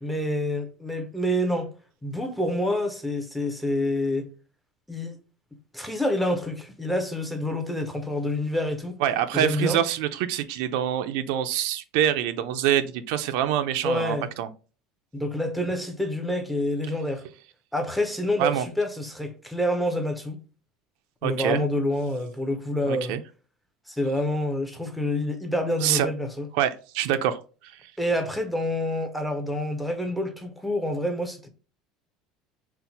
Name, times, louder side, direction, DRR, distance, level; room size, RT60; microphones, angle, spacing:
voice 1, 0.0-1.7 2.0-4.3 4.9-5.2 5.7-9.0 9.3-9.8 13.8-14.3 15.1-17.2 17.7-20.4 21.2-23.2 23.9-26.5 28.0-31.5, left 1 dB, ahead, 0.5 m, -27 dB
voice 2, 9.0-14.5 18.4-18.7 21.2-21.6 22.8-23.2 25.8-26.1 26.5-27.4, right 10 dB, 70° right, 0.4 m, -25 dB
4.2 x 2.1 x 3.9 m
cardioid pair, 160°, 0 cm